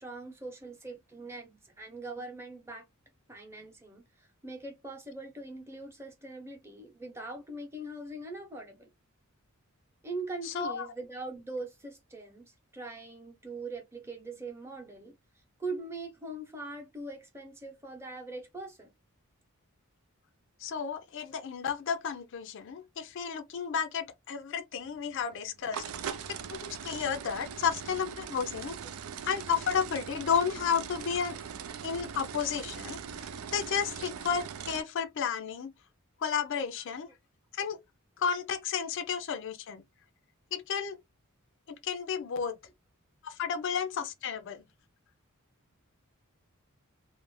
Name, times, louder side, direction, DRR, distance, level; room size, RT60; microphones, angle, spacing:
voice 1, 0.0-2.9 3.3-8.9 10.0-15.1 15.6-18.9, right 2 dB, 10° right, 0.8 m, -42 dB
voice 2, 10.4-10.9 20.6-26.2 26.5-28.8 29.2-31.4 31.8-35.7 36.2-37.1 37.5-37.8 38.2-39.8 40.5-41.0 41.7-42.6 43.2-44.6, left 7 dB, 60° left, 0.4 m, -32 dB
sound 1, 24.8-34.8, right 7 dB, 75° right, 0.4 m, -41 dB
2.5 x 2.1 x 3.0 m
head